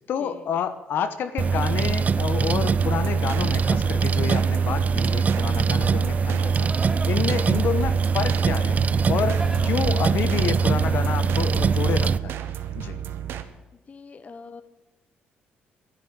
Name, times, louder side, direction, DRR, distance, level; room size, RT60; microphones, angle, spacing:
voice 1, 0.0-8.8 9.1-12.4 12.7-13.0, left 7 dB, 70° left, 10 dB, 1.1 m, -29 dB
sound 1, 1.4-12.2, right 5 dB, 40° right, 0.4 m, -22 dB
sound 2, 2.8-13.4, right 8 dB, 75° right, 1.0 m, -34 dB
Livestock farm animals working animals, 5.8-10.9, right 1 dB, 15° right, 2.3 m, -42 dB
voice 2, 13.7-14.6, left 4 dB, 40° left, 11 dB, 0.9 m, -44 dB
11.0 x 9.7 x 9.0 m, 1.0 s
supercardioid pair, 70°, 4 cm